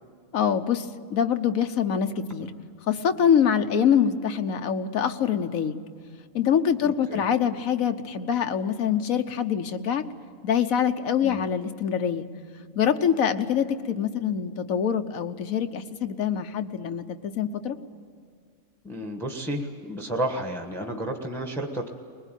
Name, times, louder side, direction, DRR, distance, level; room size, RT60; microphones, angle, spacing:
voice 1, 0.3-2.5 2.9-5.8 6.3-10.0 10.4-12.3 12.7-17.8, left 8 dB, 90° left, 8 dB, 1.4 m, -25 dB
voice 2, 6.8-7.2 11.2-11.4 18.8-21.9, right 1 dB, ahead, 3 dB, 1.3 m, -31 dB
21.0 x 20.5 x 9.1 m, 2.1 s
omnidirectional pair, 1.4 m